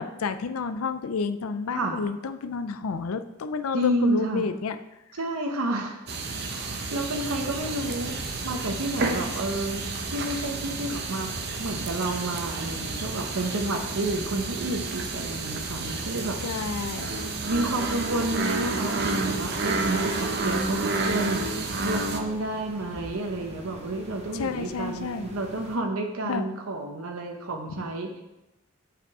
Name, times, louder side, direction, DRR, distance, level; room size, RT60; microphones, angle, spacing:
voice 1, 0.0-4.8 16.4-17.1 21.2-21.3 24.3-25.3 26.3-26.4 27.7-27.8, left 5 dB, 85° left, 10 dB, 0.5 m, -30 dB
voice 2, 3.7-4.5 5.2-6.0 6.5-8.2 8.4-11.3 11.6-16.4 17.4-28.2, right 1 dB, 85° right, 3 dB, 0.9 m, -30 dB
sound 1, 6.1-22.2, right 3 dB, 50° right, 0.8 m, -30 dB
sound 2, 7.6-25.8, right 1 dB, 30° right, 1.2 m, -44 dB
7.9 x 5.1 x 4.8 m, 0.94 s
head